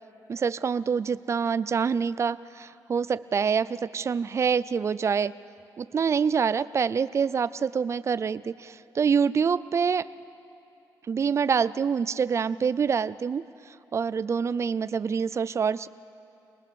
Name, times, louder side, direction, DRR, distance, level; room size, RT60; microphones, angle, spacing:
voice 1, 0.3-5.3 5.8-10.1 11.1-13.4 13.9-15.9, right 6 dB, 35° right, 14 dB, 0.4 m, -26 dB
26.0 x 19.5 x 6.9 m, 2.7 s
cardioid pair, 115°, 8 cm